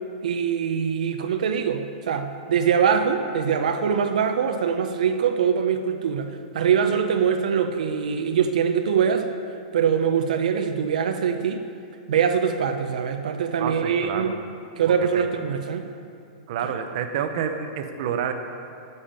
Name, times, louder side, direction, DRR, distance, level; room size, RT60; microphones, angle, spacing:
voice 1, 0.2-9.3 9.7-11.6 12.1-14.3 14.8-15.9 16.6-16.7, right 7 dB, 80° right, 6 dB, 0.7 m, -23 dB
voice 2, 13.6-14.4 15.1-15.2 16.5-18.3, right 8 dB, 50° right, 6 dB, 0.9 m, -28 dB
9.7 x 7.1 x 8.9 m, 2.5 s
supercardioid pair, 165°, 4 cm